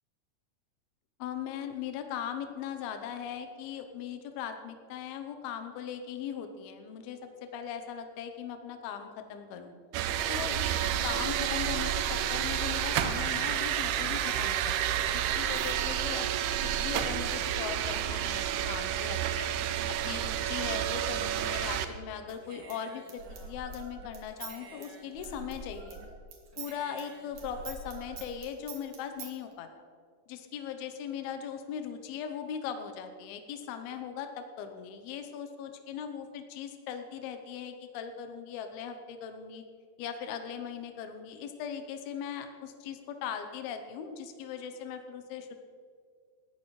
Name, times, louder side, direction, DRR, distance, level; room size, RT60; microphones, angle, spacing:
voice 1, 1.2-7.2 7.5-9.7 10.3-16.3 16.7-19.5 20.0-26.0 26.6-29.7 30.3-39.6 40.0-45.6, left 8 dB, 80° left, 7 dB, 2.8 m, -39 dB
sound 1, 9.9-21.9, right 10 dB, 85° right, 2.7 m, -30 dB
Human voice / Scissors, 22.3-26.0 26.3-29.3, right 4 dB, 60° right, 2.9 m, -46 dB
18.0 x 14.0 x 3.2 m, 2.1 s
omnidirectional pair, 4.5 m